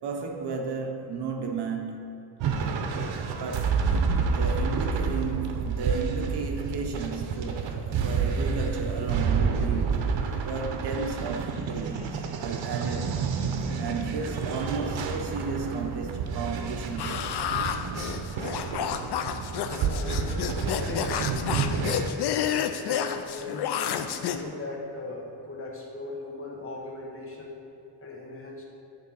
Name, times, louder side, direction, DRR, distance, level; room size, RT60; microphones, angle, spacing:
voice 1, 0.0-2.4 3.4-3.9 4.2-10.1 10.4-13.3 13.6-17.3, right 4 dB, 65° right, 2 dB, 1.0 m, -34 dB
sound 1, 2.4-22.1, right 5 dB, 90° right, 0.8 m, -29 dB
sound 2, 17.0-24.4, left 9 dB, 65° left, 0.5 m, -30 dB
voice 2, 19.7-21.9 22.8-27.6 28.0-28.6, left 2 dB, 30° left, -2 dB, 1.3 m, -38 dB
9.4 x 3.8 x 5.6 m, 2.8 s
wide cardioid pair, 150°, 44 cm